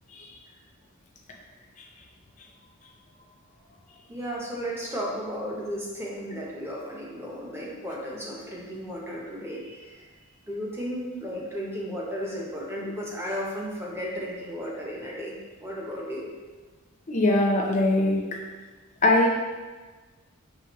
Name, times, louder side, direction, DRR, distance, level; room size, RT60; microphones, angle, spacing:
voice 1, 4.1-9.9 10.5-15.4 15.6-16.3, equal, 10° right, -4 dB, 0.7 m, -34 dB
voice 2, 17.1-18.2 19.0-19.3, left 1 dB, 35° left, 0 dB, 0.5 m, -21 dB
4.9 x 3.3 x 2.9 m, 1.3 s
head